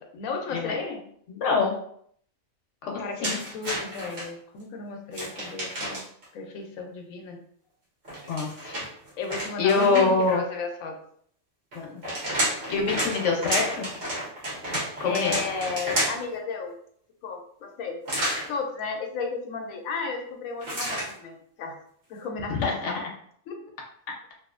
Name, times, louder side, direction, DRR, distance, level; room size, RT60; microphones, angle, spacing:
voice 1, 0.1-1.0 3.0-6.0 6.3-7.4 9.1-11.0 15.0-16.8 17.2-18.0 18.5-21.8 22.1-23.0 23.5-23.6, left 4 dB, 90° left, 3 dB, 1.0 m, -34 dB
voice 2, 1.4-1.7 2.8-3.4 8.3-8.8 9.6-10.4 11.7-12.0 12.3-13.9 15.0-15.3 22.5-23.1, left 4 dB, 65° left, 0 dB, 1.0 m, -25 dB
sound 1, 3.2-4.3 5.1-6.2 8.0-10.3 11.7-16.3 18.1-18.5 20.6-21.1, right 1 dB, 55° right, 1.4 m, -30 dB
2.9 x 2.7 x 2.4 m, 0.65 s
omnidirectional pair, 1.4 m